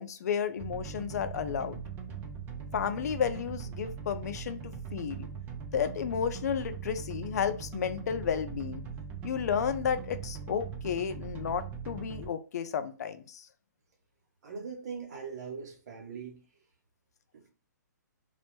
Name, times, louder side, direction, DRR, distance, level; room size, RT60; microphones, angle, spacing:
voice 1, 0.0-1.8 2.7-5.3 5.7-8.8 9.2-13.5, left 7 dB, 60° left, 0.4 m, -32 dB
sound 1, 0.6-12.3, right 6 dB, 20° right, 0.4 m, -41 dB
voice 2, 14.4-16.4 17.3-17.5, right 5 dB, 60° right, 0.8 m, -41 dB
2.1 x 2.0 x 2.9 m
hypercardioid pair, 140°, 10 cm